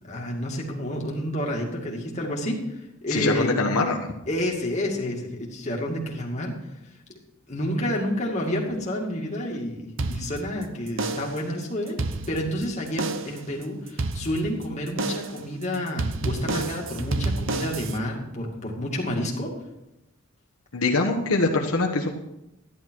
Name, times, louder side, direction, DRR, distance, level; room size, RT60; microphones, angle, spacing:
voice 1, 0.1-3.5 4.3-6.5 7.5-12.0 12.3-19.5, left 1 dB, 30° left, -2 dB, 2.3 m, -29 dB
voice 2, 3.1-4.0 20.7-22.1, left 3 dB, 75° left, 0 dB, 1.3 m, -23 dB
sound 1, 10.0-10.6 11.0-11.5 11.9-12.6 13.0-13.5 14.0-14.6 15.0-15.5 16.0-18.0, right 3 dB, 60° right, 0.8 m, -29 dB
12.5 x 10.5 x 4.7 m, 0.90 s
head